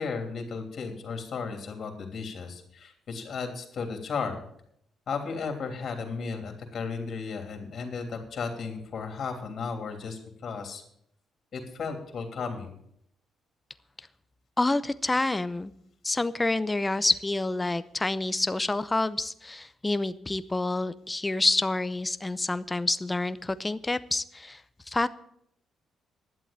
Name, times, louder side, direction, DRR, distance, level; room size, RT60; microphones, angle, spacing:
voice 1, 0.0-4.4 5.1-10.8 11.5-12.8, left 5 dB, 55° left, 5 dB, 3.1 m, -34 dB
voice 2, 14.6-15.7 16.0-24.6 24.9-25.1, left 2 dB, 15° left, 14 dB, 0.7 m, -28 dB
11.0 x 7.9 x 8.7 m, 0.71 s
cardioid pair, 90°, 0 cm